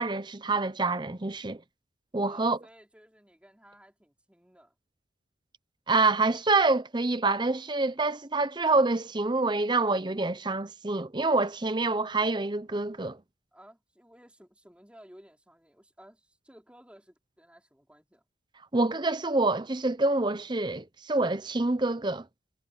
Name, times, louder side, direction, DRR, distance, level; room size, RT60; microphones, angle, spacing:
voice 1, 0.0-1.6 2.1-2.6 5.9-13.2 18.7-22.2, right 3 dB, 25° right, 0.8 m, -26 dB
voice 2, 2.2-4.8 13.5-18.2, equal, 5° right, 4.3 m, -55 dB
head